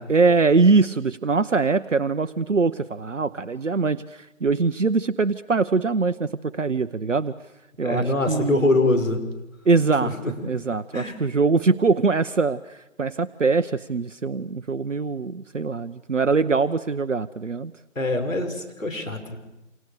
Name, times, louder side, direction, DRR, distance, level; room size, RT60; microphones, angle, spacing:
voice 1, 0.1-7.3 7.8-8.7 9.7-10.1 10.4-17.7, right 4 dB, 70° right, 11 dB, 1.0 m, -22 dB
voice 2, 7.8-9.2 10.0-10.5 10.9-11.2 18.0-19.4, left 2 dB, 85° left, 5 dB, 6.2 m, -24 dB
29.5 x 27.5 x 6.8 m, 0.97 s
figure-of-eight pair, 150°, 38 cm